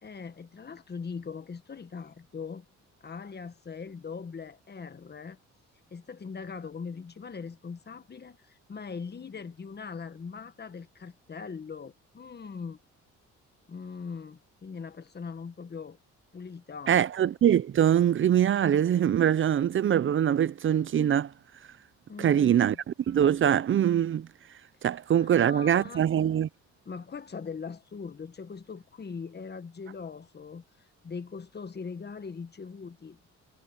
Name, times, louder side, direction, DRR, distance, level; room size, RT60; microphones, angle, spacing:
voice 1, 0.0-2.6 3.0-5.4 5.9-12.8 13.7-16.0 16.3-17.0 22.1-22.8 25.2-26.0 26.8-30.6 31.0-33.3, left 5 dB, 35° left, 1.6 m, -41 dB
voice 2, 16.9-21.3 22.2-22.8 23.1-24.3 24.8-26.5, right 9 dB, 40° right, 0.5 m, -23 dB
cardioid pair, 90°, 30 cm